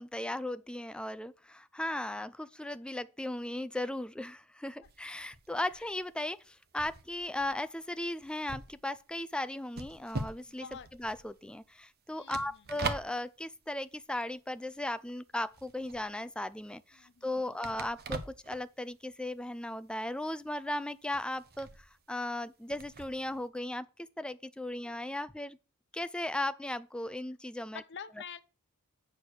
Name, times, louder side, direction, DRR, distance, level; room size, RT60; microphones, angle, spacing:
voice 1, 0.0-10.7 11.0-23.9 24.2-25.6 25.9-27.8, left 1 dB, 5° left, 0.4 m, -37 dB
sound 1, 4.8-15.1 15.3-23.5, right 3 dB, 45° right, 0.9 m, -43 dB
voice 2, 10.5-10.9 12.1-12.7 16.9-17.6 24.7-24.8 27.7-28.4, left 7 dB, 55° left, 0.7 m, -48 dB
8.7 x 4.6 x 6.4 m
head